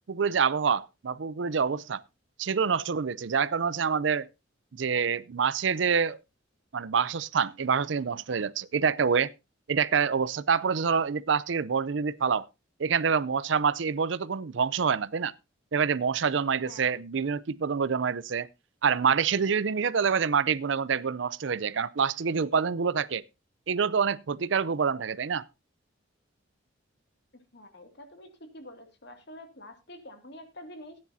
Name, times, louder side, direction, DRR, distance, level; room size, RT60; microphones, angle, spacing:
voice 1, 0.1-2.0 2.4-4.3 4.7-6.2 6.7-9.3 9.7-12.5 12.8-15.3 15.7-18.5 18.8-23.2 23.7-25.4, right 6 dB, 65° right, 0.5 m, -26 dB
voice 2, 27.5-31.0, left 1 dB, 60° left, 2.3 m, -47 dB
16.5 x 9.7 x 2.7 m
head